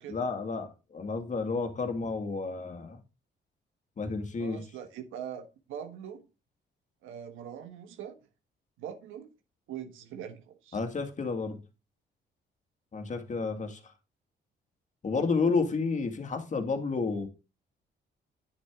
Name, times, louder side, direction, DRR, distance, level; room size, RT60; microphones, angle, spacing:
voice 1, 0.1-3.0 4.0-4.6 10.7-11.6 12.9-13.8 15.0-17.3, left 4 dB, 40° left, 2.0 m, -31 dB
voice 2, 4.4-6.2 7.0-8.3 8.8-9.3 9.7-10.8, right 9 dB, 90° right, 1.4 m, -42 dB
10.0 x 6.3 x 3.7 m
cardioid pair, 90°, 20 cm